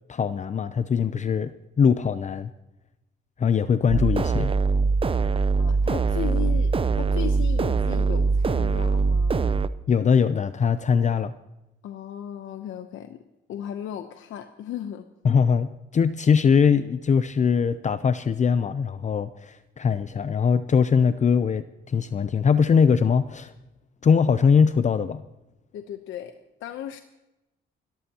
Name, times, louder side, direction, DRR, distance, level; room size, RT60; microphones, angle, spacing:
voice 1, 0.1-1.5 1.8-2.5 3.4-4.5 9.9-11.3 15.2-23.5 24.0-25.2, left 6 dB, 35° left, 12 dB, 0.6 m, -21 dB
sound 1, 3.9-9.7, right 4 dB, 25° right, 0.6 m, -22 dB
voice 2, 5.6-9.4 11.8-13.2 13.5-15.1 25.7-26.3 26.6-27.0, left 10 dB, 80° left, 8 dB, 0.9 m, -36 dB
28.5 x 13.5 x 2.9 m, 0.99 s
cardioid pair, 90°, 20 cm